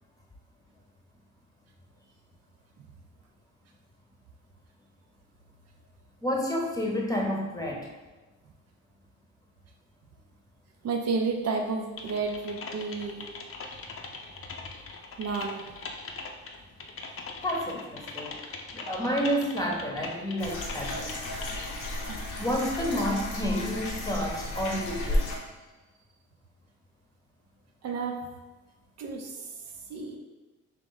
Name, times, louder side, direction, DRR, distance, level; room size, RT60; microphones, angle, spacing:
voice 1, 6.2-7.9 17.4-18.5 18.7-21.2 22.4-25.2, equal, 10° left, -1 dB, 0.9 m, -30 dB
voice 2, 10.8-13.3 15.2-15.6 22.1-22.2 22.5-22.7 27.8-28.2 29.0-30.2, right 4 dB, 55° right, 2 dB, 0.6 m, -32 dB
Typing, 12.0-21.9, left 4 dB, 45° left, 0.6 m, -41 dB
sound 1, 20.4-25.4, left 1 dB, 90° left, 0.9 m, -33 dB
3.7 x 3.0 x 3.9 m, 1.2 s
cardioid pair, 90°, 30 cm